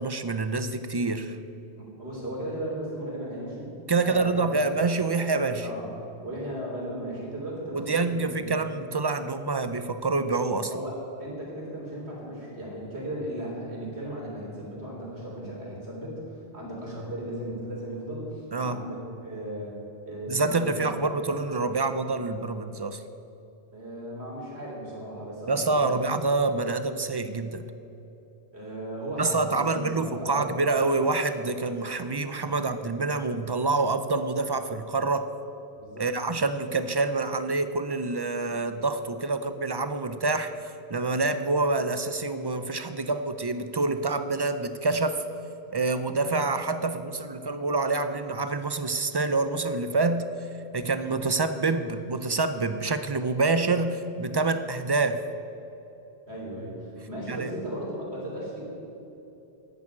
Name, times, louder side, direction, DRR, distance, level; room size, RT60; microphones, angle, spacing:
voice 1, 0.0-1.4 3.9-5.7 7.7-10.7 18.5-18.8 20.3-23.0 25.5-27.6 29.2-35.3 36.0-40.5 40.9-45.2 45.7-50.3 50.7-55.2 57.3-57.5, right 3 dB, 40° right, 10 dB, 0.3 m, -27 dB
voice 2, 1.8-4.6 5.6-5.9 6.2-8.4 10.7-19.7 20.0-21.0 23.7-26.1 28.5-30.5 35.8-36.1 56.3-58.7, right 1 dB, 65° right, -3 dB, 3.7 m, -36 dB
10.5 x 8.6 x 8.7 m, 2.9 s
omnidirectional pair, 1.2 m